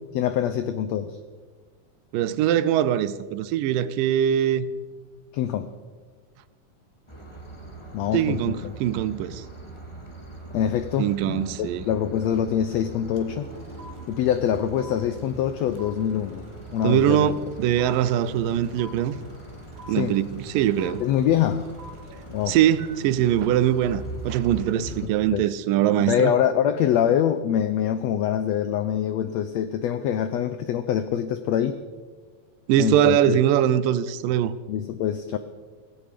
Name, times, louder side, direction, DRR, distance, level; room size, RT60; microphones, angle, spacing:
voice 1, 0.1-1.2 5.3-5.7 7.9-8.7 10.5-13.5 14.1-16.4 16.7-17.3 19.9-20.2 21.0-21.7 22.3-22.6 24.8-25.6 26.0-31.8 32.8-33.4 34.7-35.4, left 9 dB, 90° left, 1.5 m, -25 dB
voice 2, 2.1-4.7 8.1-9.4 11.0-11.8 16.8-19.2 19.9-21.0 22.5-26.3 32.7-34.5, right 11 dB, 85° right, 2.4 m, -22 dB
sound 1, 7.1-25.1, right 2 dB, 15° left, 1.2 m, -41 dB
sound 2, 13.2-13.3 13.5-24.6, equal, 35° right, 1.9 m, -48 dB
17.0 x 16.0 x 5.1 m
omnidirectional pair, 3.8 m